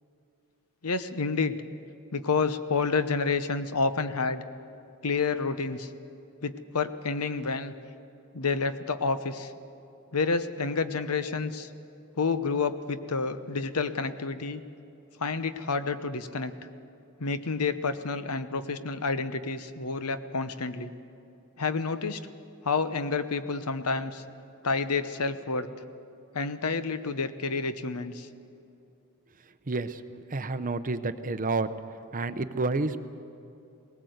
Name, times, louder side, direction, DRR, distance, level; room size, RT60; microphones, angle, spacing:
voice 1, 0.8-1.6 2.1-4.4 5.0-5.9 6.4-7.7 8.3-9.5 10.1-11.7 12.2-14.6 15.2-16.5 17.2-20.9 21.6-22.2 22.6-24.2 24.6-25.7 26.3-28.3, left 4 dB, 90° left, 11 dB, 0.9 m, -29 dB
voice 2, 29.7-30.0 30.3-31.7 32.1-33.0, right 3 dB, 40° right, 11 dB, 0.8 m, -29 dB
19.5 x 19.0 x 8.0 m, 2.7 s
head